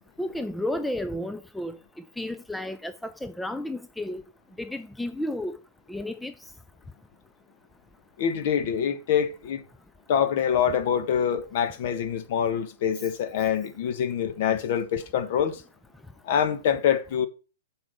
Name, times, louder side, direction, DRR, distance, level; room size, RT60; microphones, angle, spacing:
voice 1, 0.2-1.8 2.2-4.2 4.6-5.6 5.9-6.3, left 1 dB, 5° left, 0.5 m, -32 dB
voice 2, 8.2-9.6 10.1-15.6 16.2-17.3, left 8 dB, 50° left, 1.5 m, -25 dB
7.6 x 4.7 x 6.7 m
hypercardioid pair, 125°, 0 cm